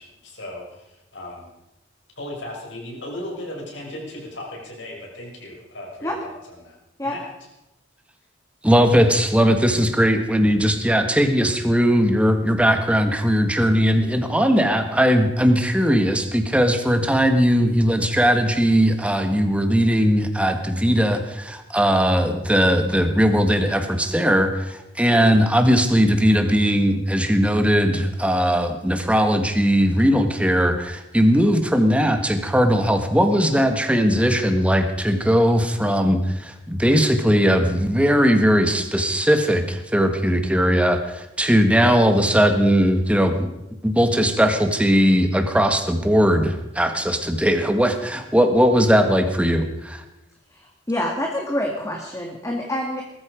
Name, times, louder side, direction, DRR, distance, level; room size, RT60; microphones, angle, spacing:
voice 1, 0.0-1.5 2.2-6.8 7.0-7.3, left 1 dB, 70° left, -1 dB, 6.4 m, -36 dB
voice 2, 8.6-43.5 43.8-50.0, equal, 5° right, 6 dB, 1.6 m, -19 dB
voice 3, 50.9-53.0, left 1 dB, 15° left, 1 dB, 1.9 m, -26 dB
20.0 x 13.5 x 5.2 m, 0.92 s
head